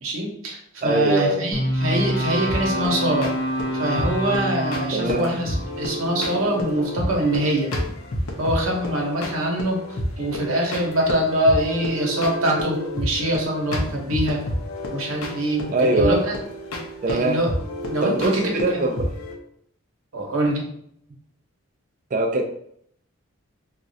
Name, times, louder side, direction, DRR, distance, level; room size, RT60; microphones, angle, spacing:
voice 1, 0.0-3.3 3.8-7.7 8.4-14.4 14.9-16.3 17.1-17.5 17.9-18.9 20.1-20.6, right 1 dB, 80° right, -1 dB, 0.8 m, -24 dB
voice 2, 0.8-1.5 4.9-5.3 15.7-16.2 17.0-17.4 18.0-19.1 22.1-22.5, right 2 dB, 35° right, 3 dB, 0.3 m, -22 dB
sound 1, 1.5-7.7, equal, 55° left, 0.7 m, -28 dB
sound 2, 2.5-19.3, left 1 dB, 90° left, 0.6 m, -30 dB
3.0 x 2.4 x 2.7 m, 0.68 s
head